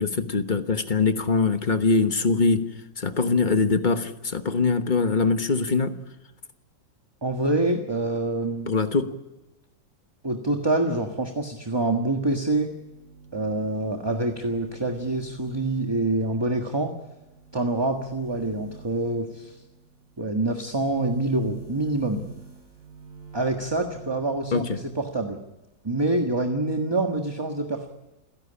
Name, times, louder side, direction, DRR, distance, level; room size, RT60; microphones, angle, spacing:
voice 1, 0.0-2.6 3.0-5.9 8.7-9.2 24.5-24.8, left 4 dB, 30° left, 9 dB, 1.1 m, -23 dB
voice 2, 7.2-8.7 10.2-12.7 13.3-16.9 17.5-19.6 20.2-22.2 23.3-25.4 25.8-27.9, right 2 dB, 15° right, 4 dB, 1.4 m, -26 dB
sound 1, 12.5-25.5 25.8-26.8, right 5 dB, 50° right, 6.8 m, -47 dB
29.0 x 11.0 x 9.9 m, 1.0 s
omnidirectional pair, 2.0 m